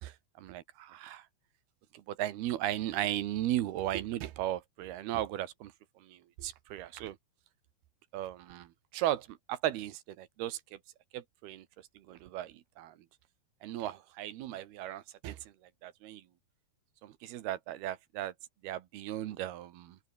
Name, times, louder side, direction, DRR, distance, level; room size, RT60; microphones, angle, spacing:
voice 1, 0.0-1.3 1.9-5.7 6.0-7.2 8.1-10.8 11.1-11.7 12.0-13.0 13.6-15.5 15.8-16.2 17.0-18.3 18.6-20.0, right 13 dB, 75° right, 3.2 m, -36 dB
open air
omnidirectional pair, 4.6 m